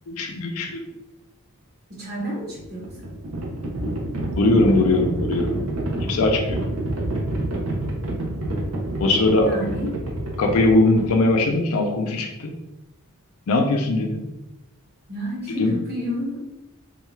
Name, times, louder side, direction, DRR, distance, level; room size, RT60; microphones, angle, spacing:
voice 1, 0.1-0.8 4.4-5.6 6.0-6.6 9.0-9.5 10.4-12.5 13.5-14.2 15.6-15.8, left 2 dB, 70° left, 3 dB, 0.4 m, -20 dB
voice 2, 1.9-2.9 9.4-9.9 15.1-16.4, equal, 45° right, -5 dB, 1.2 m, -30 dB
Livestock farm animals working animals, 2.5-11.5, right 1 dB, 65° right, 0.7 m, -28 dB
3.6 x 2.3 x 3.1 m, 0.99 s
head